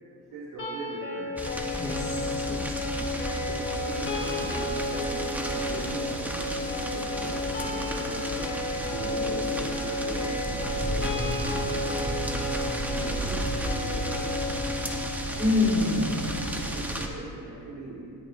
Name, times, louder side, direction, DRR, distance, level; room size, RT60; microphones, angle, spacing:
voice 1, 0.1-1.4 3.4-8.4 8.8-12.5 13.0-14.4 16.4-18.1, right 2 dB, 85° right, -7 dB, 1.8 m, -41 dB
sound 1, 0.6-16.6, left 2 dB, 40° left, 2.0 m, -33 dB
sound 2, 1.4-17.1, right 1 dB, 5° right, 0.8 m, -33 dB
voice 2, 1.8-2.8 12.9-13.2 15.4-16.3, left 2 dB, 25° left, -5 dB, 2.7 m, -27 dB
sound 3, 3.0-14.4, right 5 dB, 55° right, 0.9 m, -45 dB
18.0 x 8.3 x 2.5 m, 2.5 s
cardioid pair, 130°, 32 cm